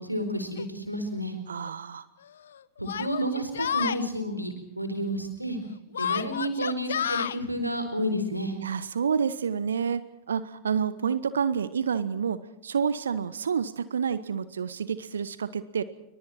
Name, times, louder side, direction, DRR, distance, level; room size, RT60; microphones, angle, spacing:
voice 1, 0.0-1.3 2.8-5.6 6.0-8.5, equal, 90° right, 7 dB, 4.5 m, -30 dB
Yell, 0.6-0.7 1.6-1.7 2.8-4.0 5.9-7.4, left 9 dB, 65° left, 0.9 m, -30 dB
voice 2, 1.5-2.1 8.6-15.8, right 7 dB, 70° right, 15 dB, 1.2 m, -29 dB
27.5 x 25.0 x 4.4 m, 0.86 s
figure-of-eight pair, 90°, 0 cm